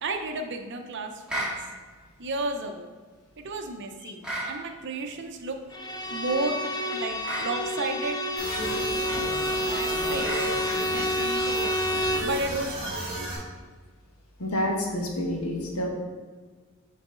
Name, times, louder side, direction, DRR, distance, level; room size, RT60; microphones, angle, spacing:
voice 1, 0.0-1.6 2.2-2.9 3.4-5.6 6.1-6.6 6.9-8.2 9.1-9.2 9.7-10.3 10.8-11.8 12.2-13.0, right 2 dB, 55° right, 5 dB, 0.7 m, -32 dB
sound 1, 1.3-1.6 4.2-4.5 7.2-7.5 10.2-10.5, right 1 dB, 5° right, 1.6 m, -31 dB
Bowed string instrument, 5.7-12.4, left 1 dB, 20° left, 0.4 m, -29 dB
sound 2, 8.4-13.4, right 1 dB, 25° right, 1.9 m, -33 dB
voice 2, 14.4-15.9, left 1 dB, 80° left, 0 dB, 1.2 m, -28 dB
7.5 x 4.0 x 3.7 m, 1.4 s
head